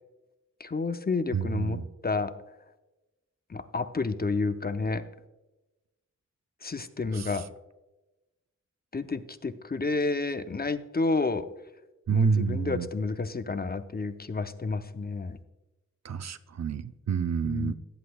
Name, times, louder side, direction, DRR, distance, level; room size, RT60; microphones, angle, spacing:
voice 1, 0.6-2.3 3.5-5.0 6.6-7.5 8.9-11.5 12.1-15.4 17.4-17.7, left 3 dB, 30° left, 10 dB, 0.6 m, -30 dB
voice 2, 1.3-1.9 7.1-7.3 12.1-12.9 16.0-17.7, right 6 dB, 65° right, 12 dB, 0.6 m, -28 dB
16.5 x 8.2 x 2.3 m, 1.0 s
wide cardioid pair, 60°, 29 cm